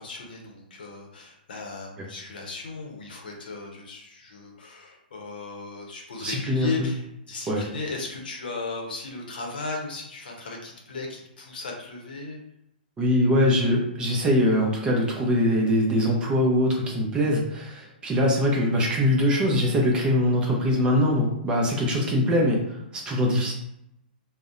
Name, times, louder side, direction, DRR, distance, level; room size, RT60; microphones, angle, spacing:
voice 1, 0.0-12.4, left 4 dB, 70° left, 0 dB, 0.7 m, -36 dB
voice 2, 6.2-6.7 7.5-7.6 13.0-23.5, left 1 dB, 15° right, -2 dB, 0.5 m, -22 dB
2.6 x 2.1 x 2.5 m, 0.82 s
hypercardioid pair, 125°, 5 cm